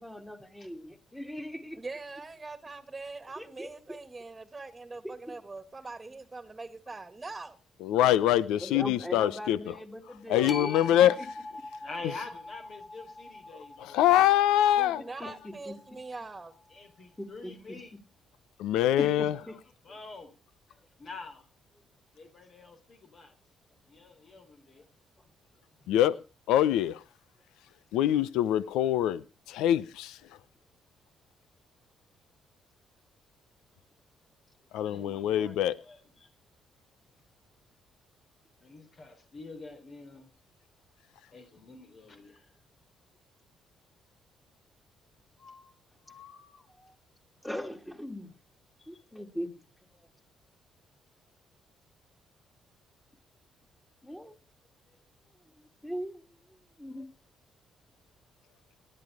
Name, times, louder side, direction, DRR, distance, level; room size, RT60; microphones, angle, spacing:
voice 1, 0.0-1.8 3.4-4.0 5.0-5.1 8.6-11.1 15.2-15.3 15.6-15.7 17.2-17.5 19.0-19.5 47.4-48.3 48.9-49.5 54.0-54.3 55.5-56.2 56.8-57.1, equal, 10° left, 2.9 m, -39 dB
voice 2, 1.8-7.6 14.8-16.5, right 3 dB, 20° right, 1.8 m, -42 dB
voice 3, 7.8-9.8 10.3-11.3 13.8-15.0 18.6-19.4 25.9-26.2 26.5-27.0 27.9-30.2 34.7-35.7, left 12 dB, 85° left, 0.7 m, -24 dB
sound 1, 10.5-16.7, left 2 dB, 35° left, 1.4 m, -44 dB
voice 4, 11.8-14.1 15.2-15.6 16.7-17.9 18.9-19.2 19.5-19.6 19.8-20.3 21.0-21.4 22.1-23.3 23.9-24.8 34.8-35.5 35.8-36.3 38.6-40.3 41.3-42.4 45.4-45.7 46.1-46.9, left 3 dB, 55° left, 3.7 m, -47 dB
18.5 x 11.0 x 4.9 m
supercardioid pair, 65°, 0 cm